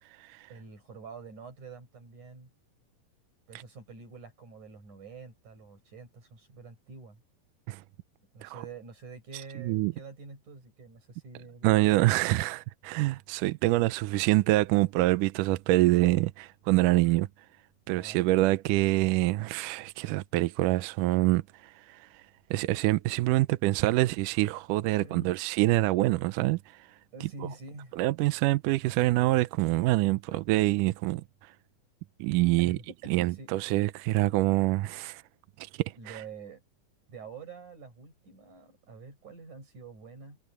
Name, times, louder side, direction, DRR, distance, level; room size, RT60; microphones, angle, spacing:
voice 1, 0.5-2.5 3.5-7.2 8.3-12.1 17.9-18.4 25.0-25.3 27.1-28.0 32.6-33.5 36.0-36.6 37.1-40.4, right 4 dB, 55° right, 8.4 m, -46 dB
voice 2, 9.6-9.9 11.6-17.3 17.9-22.1 22.5-26.9 28.0-31.5 32.2-32.8 33.1-35.2 35.6-36.2, right 18 dB, 80° right, 2.0 m, -26 dB
omnidirectional pair, 4.2 m